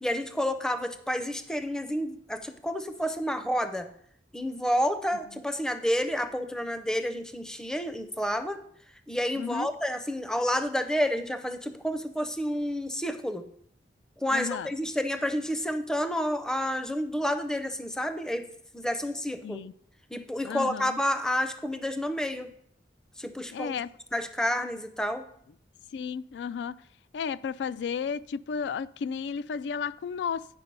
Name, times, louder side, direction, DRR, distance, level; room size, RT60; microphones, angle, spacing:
voice 1, 0.0-3.9 4.3-8.6 9.1-13.5 14.2-18.5 18.7-19.6 20.1-22.5 23.2-23.7 24.1-25.3, equal, 5° left, 9 dB, 0.5 m, -30 dB
voice 2, 9.4-9.7 14.3-14.7 19.4-19.7 20.4-21.0 23.5-23.9 25.9-26.8 27.1-30.5, left 6 dB, 75° left, 19 dB, 0.3 m, -33 dB
9.0 x 5.1 x 5.4 m, 0.67 s
head